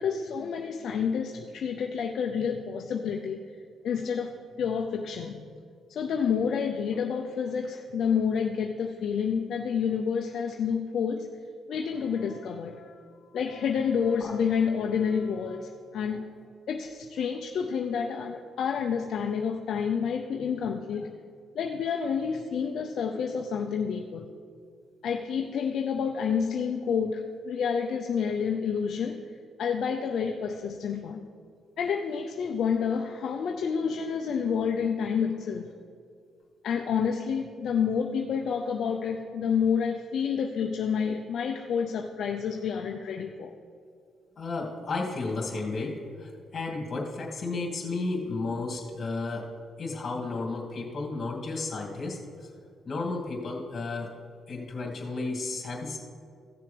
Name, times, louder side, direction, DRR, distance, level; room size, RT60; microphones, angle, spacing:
voice 1, 0.0-3.4 3.8-4.3 4.6-5.4 5.9-11.3 11.7-12.9 13.3-16.3 16.7-21.1 21.5-24.2 25.0-29.2 29.6-31.2 31.8-35.7 36.6-43.5, left 6 dB, 65° left, 2 dB, 0.6 m, -29 dB
voice 2, 44.4-49.5 49.8-52.5 52.8-54.1 54.5-56.0, left 3 dB, 45° left, -2 dB, 2.5 m, -33 dB
16.0 x 6.8 x 3.4 m, 2.2 s
cardioid pair, 90°, 0 cm